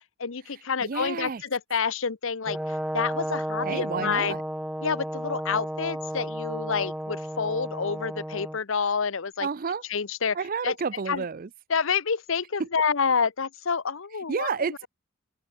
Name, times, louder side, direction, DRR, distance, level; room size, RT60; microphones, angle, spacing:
voice 1, 0.2-4.4 4.8-9.5 9.9-10.4 10.6-10.7 11.1-11.2 11.7-14.9, left 5 dB, 60° left, 0.8 m, -28 dB
voice 2, 0.8-1.4 3.6-4.4 9.4-9.8 10.3-11.5 12.6-12.7 14.3-14.9, right 5 dB, 40° right, 0.5 m, -30 dB
Brass instrument, 2.5-8.6, equal, 5° right, 1.1 m, -33 dB
open air
head